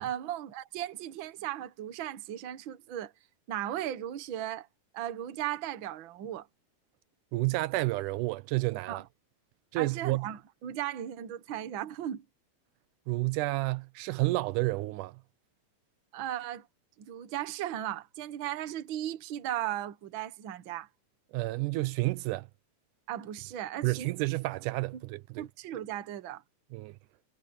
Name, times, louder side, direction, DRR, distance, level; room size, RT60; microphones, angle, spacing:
voice 1, 0.0-3.1 3.5-4.7 4.9-6.5 8.9-9.0 9.8-12.2 16.1-16.7 17.0-20.9 23.1-24.1 24.9-25.0 25.4-26.4, right 12 dB, 55° right, 1.5 m, -36 dB
voice 2, 7.3-9.0 9.7-10.3 13.1-15.2 21.3-22.5 23.8-25.5 26.7-27.0, right 21 dB, 85° right, 2.1 m, -30 dB
omnidirectional pair, 3.6 m